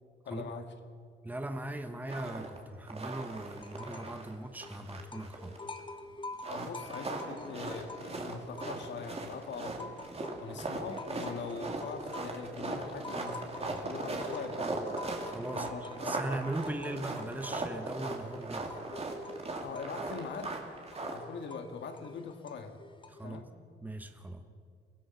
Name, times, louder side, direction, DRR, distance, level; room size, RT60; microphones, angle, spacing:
voice 1, 0.3-0.7 6.5-10.0 10.4-14.9 15.5-16.2 19.6-20.6 21.0-22.8 23.2-23.5, left 5 dB, 65° left, 6 dB, 2.0 m, -42 dB
voice 2, 1.2-5.6 10.5-10.7 15.2-18.7 23.1-23.4 23.8-24.4, right 1 dB, 10° right, 7 dB, 1.2 m, -39 dB
sound 1, 2.1-2.6 2.9-4.3 4.6-5.8 6.3-21.2, right 3 dB, 30° right, 3.1 m, -39 dB
sound 2, 3.6-4.2 4.5-9.1 9.5-23.4, left 2 dB, 25° left, 1.5 m, -48 dB
23.5 x 16.0 x 7.1 m, 2.2 s
cardioid pair, 90°, 20 cm